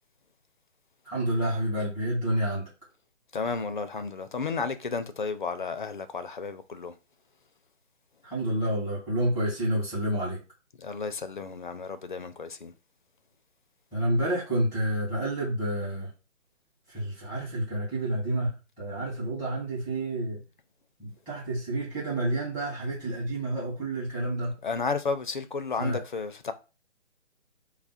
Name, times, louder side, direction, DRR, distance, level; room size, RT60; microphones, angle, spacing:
voice 1, 1.0-2.7 8.2-10.4 13.9-16.1 16.9-20.4 21.0-24.5 25.8-26.0, right 1 dB, 10° right, 1.9 m, -29 dB
voice 2, 3.3-6.9 10.8-12.7 24.6-26.5, left 4 dB, 40° left, 0.4 m, -32 dB
3.4 x 2.0 x 4.1 m
figure-of-eight pair, 145°, 37 cm